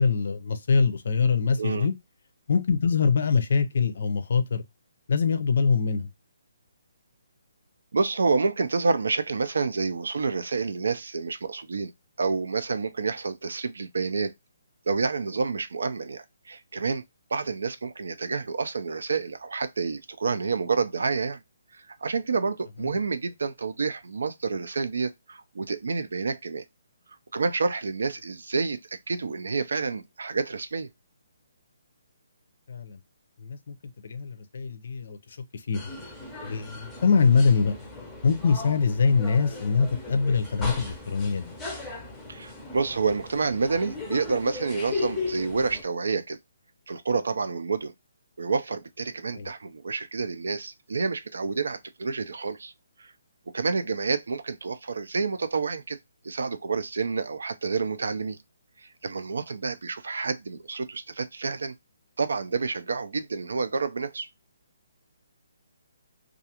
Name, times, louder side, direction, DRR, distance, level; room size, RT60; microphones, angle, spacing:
voice 1, 0.0-1.9 2.5-4.6 5.1-6.1 32.7-33.0 33.4-33.8 34.0-35.9 36.4-37.7 38.2-41.5 49.3-49.5, left 5 dB, 55° left, 0.5 m, -24 dB
voice 2, 7.9-11.9 12.2-14.3 14.9-17.0 17.3-21.4 21.8-26.6 27.3-28.8 29.1-30.9 42.3-46.4 46.9-47.9 48.4-52.7 53.0-53.1 53.5-56.0 56.2-58.4 58.8-61.7 62.2-64.3, right 4 dB, 80° right, 0.5 m, -28 dB
sound 1, 35.7-45.8, left 3 dB, 5° left, 0.6 m, -37 dB
2.4 x 2.3 x 2.8 m
hypercardioid pair, 170°, 0 cm